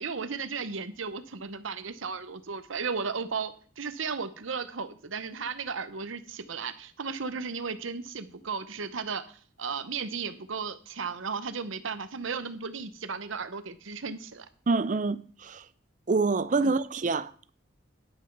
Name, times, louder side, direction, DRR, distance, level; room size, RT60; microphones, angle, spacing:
voice 1, 0.0-14.5 16.6-16.7, right 5 dB, 85° right, 0.9 m, -35 dB
voice 2, 14.7-15.6 16.1-17.5, right 3 dB, 40° right, 0.5 m, -27 dB
10.5 x 6.1 x 5.9 m
head